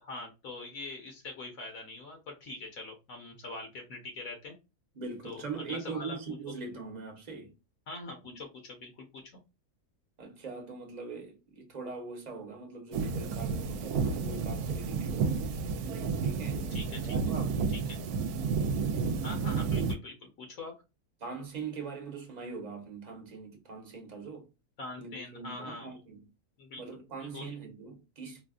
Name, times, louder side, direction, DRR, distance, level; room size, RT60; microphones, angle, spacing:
voice 1, 0.0-4.6 5.2-6.2 7.9-9.2 16.7-17.3 17.9-18.0 19.2-20.7 24.8-25.9 26.6-26.8 27.2-27.5, left 2 dB, 65° left, 1.5 m, -43 dB
voice 2, 4.9-7.5 8.2-8.4 10.2-15.6 16.2-16.6 17.0-17.6 21.2-24.5 25.0-26.2 26.8-28.4, right 4 dB, 30° right, 0.9 m, -42 dB
sound 1, 12.9-19.9, right 5 dB, 75° right, 1.0 m, -31 dB
4.1 x 2.3 x 2.4 m
omnidirectional pair, 1.6 m